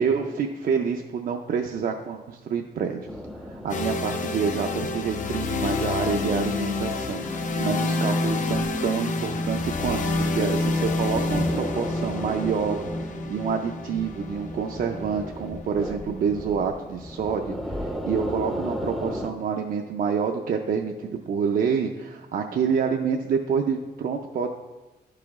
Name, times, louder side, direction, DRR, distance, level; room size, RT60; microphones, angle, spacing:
voice 1, 0.0-3.1 3.4-24.5, right 6 dB, 55° right, 3 dB, 0.5 m, -27 dB
sound 1, 3.1-19.3, equal, ahead, 0.5 m, -37 dB
sound 2, 3.7-17.6, left 2 dB, 50° left, 0.5 m, -28 dB
11.0 x 5.0 x 3.5 m, 1.2 s
wide cardioid pair, 150°, 17 cm